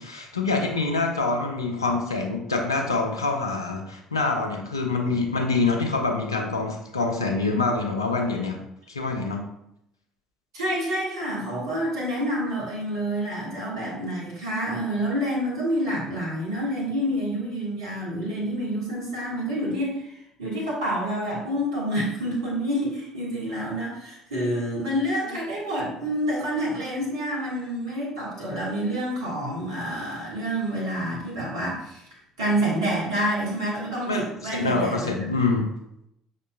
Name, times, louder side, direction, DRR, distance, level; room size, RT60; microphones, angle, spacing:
voice 1, 0.0-8.6 8.9-9.4 34.1-35.7, left 3 dB, 85° left, 3 dB, 0.5 m, -25 dB
voice 2, 10.5-20.1 20.4-32.0 32.4-35.6, equal, 80° right, -5 dB, 1.3 m, -28 dB
5.4 x 3.7 x 2.2 m, 0.80 s
figure-of-eight pair, 50°, 2 cm